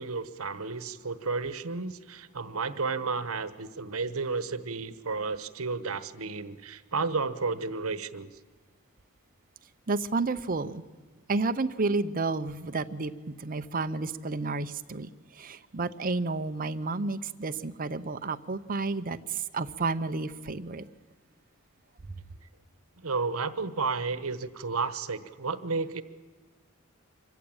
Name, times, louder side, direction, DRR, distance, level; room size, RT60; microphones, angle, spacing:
voice 1, 0.0-8.3 23.0-26.0, right 4 dB, 85° right, 13 dB, 1.1 m, -32 dB
voice 2, 9.9-10.8 11.3-13.1 13.4-20.8, right 3 dB, 40° right, 9 dB, 0.8 m, -31 dB
25.5 x 15.0 x 8.8 m, 1.4 s
head